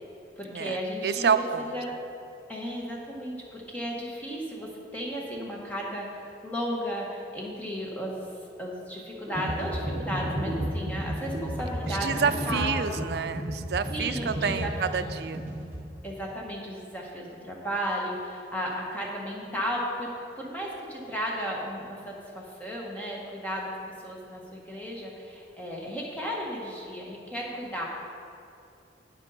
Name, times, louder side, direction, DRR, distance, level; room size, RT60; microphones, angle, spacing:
voice 1, 0.4-1.3 1.7-1.9 2.5-8.3 8.6-13.0 13.9-15.1 16.0-20.1 20.4-23.7 24.0-27.8, equal, 10° left, -3 dB, 1.2 m, -34 dB
voice 2, 1.0-1.7 11.9-15.4, right 6 dB, 60° right, 10 dB, 0.4 m, -28 dB
sound 1, 9.3-15.8, equal, 10° right, 2.3 m, -32 dB
9.7 x 9.0 x 4.1 m, 2.7 s
head